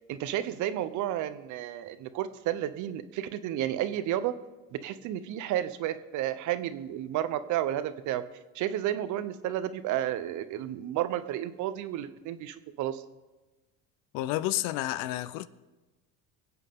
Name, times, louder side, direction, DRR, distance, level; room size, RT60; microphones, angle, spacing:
voice 1, 0.1-4.3 4.7-8.2 8.5-13.0, right 12 dB, 60° right, 0.9 m, -32 dB
voice 2, 14.1-15.5, left 15 dB, 75° left, 0.7 m, -30 dB
23.5 x 8.2 x 3.7 m
supercardioid pair, 105°, 33 cm